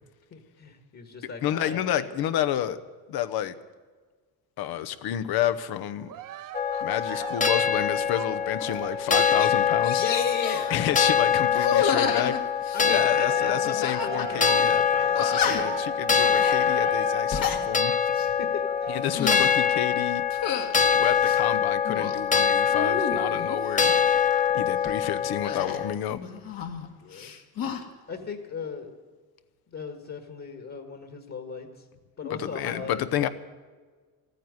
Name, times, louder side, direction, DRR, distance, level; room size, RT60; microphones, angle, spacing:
voice 1, 0.3-2.1 10.0-11.0 12.7-14.8 15.4-15.6 18.4-19.0 27.0-27.3 28.1-29.0 29.7-31.8 32.2-33.0, left 5 dB, 45° left, 5 dB, 1.8 m, -36 dB
voice 2, 1.4-2.8 3.1-3.5 4.6-6.1 6.8-10.0 10.7-12.4 12.9-17.9 18.9-20.2 20.9-23.9 24.5-26.2 32.3-33.3, left 11 dB, 85° left, 12 dB, 0.9 m, -30 dB
Cheering, 6.1-12.4 12.8-19.4 20.0-20.1, right 10 dB, 60° right, 0.7 m, -40 dB
sound 1, 6.5-25.9, left 7 dB, 20° left, 0.9 m, -24 dB
sound 2, 8.6-8.8 9.1-9.5 9.8-10.7 11.5-13.1 13.8-14.3 14.6-14.7 15.2-15.8 16.3-16.6 17.1-17.6 18.1-18.3 19.0-19.6 20.3-20.7 21.2-22.2 22.7-23.6 25.4-26.9 27.1-27.8, left 7 dB, 65° left, 1.8 m, -30 dB
14.5 x 9.2 x 9.5 m, 1.5 s
cardioid pair, 90°, 36 cm